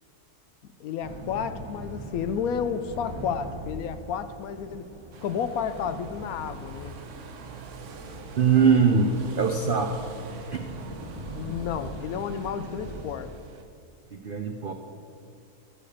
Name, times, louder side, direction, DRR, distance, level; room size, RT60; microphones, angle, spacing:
voice 1, 0.8-4.9 5.2-6.9 11.3-13.3, left 7 dB, 70° left, 11 dB, 1.0 m, -31 dB
sound 1, 1.0-13.0, right 1 dB, 20° right, 1.1 m, -41 dB
sound 2, 5.1-13.6, right 5 dB, 55° right, 1.0 m, -44 dB
voice 2, 8.4-10.0 10.5-10.8 14.1-14.7, right 5 dB, 90° right, 5 dB, 0.4 m, -22 dB
11.5 x 5.0 x 7.1 m, 2.4 s
omnidirectional pair, 1.7 m